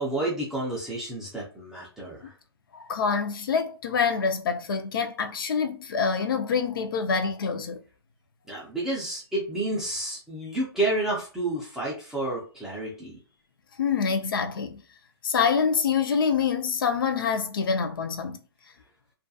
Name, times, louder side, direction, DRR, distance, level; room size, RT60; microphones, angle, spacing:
voice 1, 0.0-2.3 8.5-13.2, right 2 dB, 5° right, 0.4 m, -30 dB
voice 2, 2.7-7.8 13.8-14.8 15.2-18.4, left 6 dB, 55° left, 0.5 m, -26 dB
2.3 x 2.2 x 2.6 m
hypercardioid pair, 145°, 14 cm